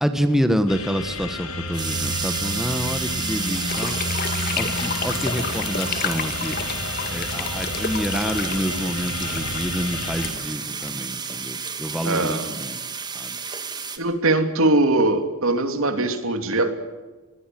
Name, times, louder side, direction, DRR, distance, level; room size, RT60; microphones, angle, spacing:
voice 1, 0.0-4.0 4.6-6.6 7.1-12.8 13.1-13.4, equal, ahead, 8 dB, 1.4 m, -27 dB
sound 1, 0.7-10.3, left 2 dB, 75° left, 4.5 m, -31 dB
sound 2, 1.7-14.0, right 6 dB, 20° right, 2.0 m, -31 dB
sound 3, 3.5-11.5, left 5 dB, 45° left, 2.4 m, -32 dB
voice 2, 12.0-12.6 14.0-16.7, right 2 dB, 65° right, 8 dB, 2.8 m, -21 dB
24.0 x 21.0 x 7.7 m, 1.3 s
head